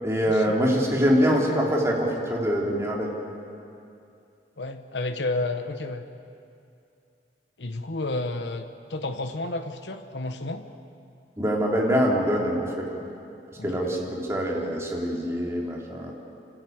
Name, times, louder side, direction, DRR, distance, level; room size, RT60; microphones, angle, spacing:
voice 1, 0.0-3.1 11.4-13.0 13.6-16.1, equal, 15° right, -2 dB, 3.3 m, -24 dB
voice 2, 4.6-6.0 7.6-8.6 8.9-10.6 13.6-13.9, left 2 dB, 85° left, 7 dB, 1.1 m, -31 dB
28.5 x 13.5 x 9.4 m, 2.6 s
head